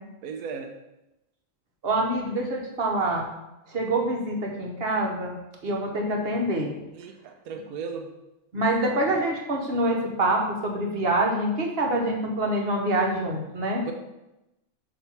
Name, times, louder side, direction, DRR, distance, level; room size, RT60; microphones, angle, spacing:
voice 1, 0.2-0.7 7.0-8.1 13.9-14.0, right 5 dB, 85° right, 4 dB, 1.1 m, -36 dB
voice 2, 1.8-3.3 3.7-5.4 5.6-6.7 8.5-13.8, right 1 dB, 45° right, 0 dB, 1.3 m, -26 dB
7.3 x 3.1 x 5.5 m, 0.93 s
omnidirectional pair, 1.5 m